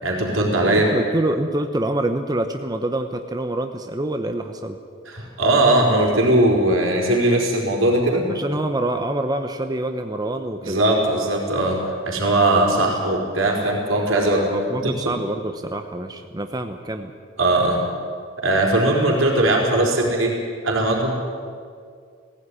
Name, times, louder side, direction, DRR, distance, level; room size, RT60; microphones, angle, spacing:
voice 1, 0.0-0.9 5.1-8.3 10.6-14.5 14.7-15.2 17.4-17.8 18.4-20.4 20.6-21.1, right 1 dB, 75° right, -1 dB, 4.5 m, -19 dB
voice 2, 0.7-4.8 8.3-10.8 14.5-17.1, right 1 dB, 20° right, 6 dB, 0.8 m, -26 dB
19.0 x 16.0 x 10.0 m, 2.2 s
head